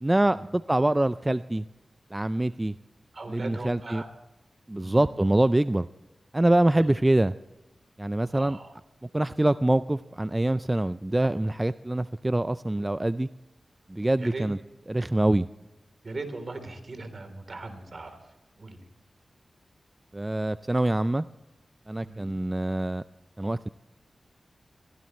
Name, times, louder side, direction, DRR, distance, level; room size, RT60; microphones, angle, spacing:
voice 1, 0.0-1.6 2.1-2.7 3.3-4.0 4.7-5.9 6.3-7.3 8.0-8.6 9.1-13.3 13.9-14.6 14.9-15.5 20.1-21.2 21.9-23.0 23.4-23.7, right 1 dB, 20° right, 13 dB, 0.4 m, -25 dB
voice 2, 3.1-4.1 4.7-5.1 6.7-6.9 8.3-8.7 14.2-14.5 16.0-18.3 18.6-18.9 22.0-22.3, right 3 dB, 50° right, 7 dB, 3.5 m, -39 dB
21.5 x 17.0 x 3.2 m, 1.0 s
cardioid pair, 65°, 0 cm